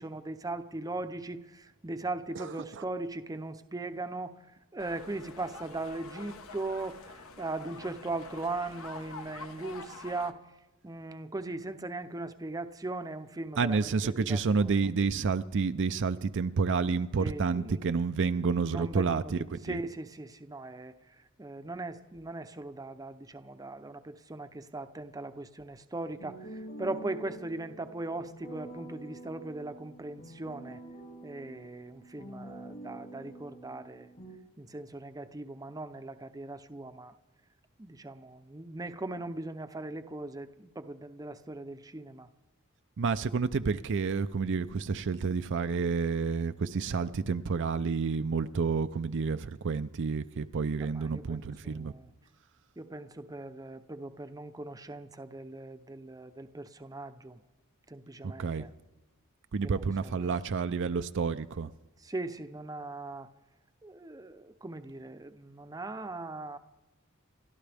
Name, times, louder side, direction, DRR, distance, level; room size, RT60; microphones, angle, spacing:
voice 1, 0.0-4.4 4.7-10.4 10.8-14.8 17.2-18.0 18.7-19.3 19.6-20.9 21.4-30.8 31.2-34.1 34.6-37.1 37.8-42.3 50.8-52.1 52.8-57.4 57.9-58.7 59.6-60.3 62.0-63.3 63.8-66.6, right 2 dB, 15° right, 0.7 m, -39 dB
voice 2, 2.4-2.8 13.6-19.8 43.0-51.9 58.2-58.7 59.5-61.7, right 5 dB, 55° right, 0.5 m, -30 dB
sound 1, 4.8-10.3, left 3 dB, 65° left, 1.1 m, -47 dB
sound 2, 26.2-34.4, right 1 dB, 45° left, 2.4 m, -47 dB
30.0 x 12.5 x 3.5 m
head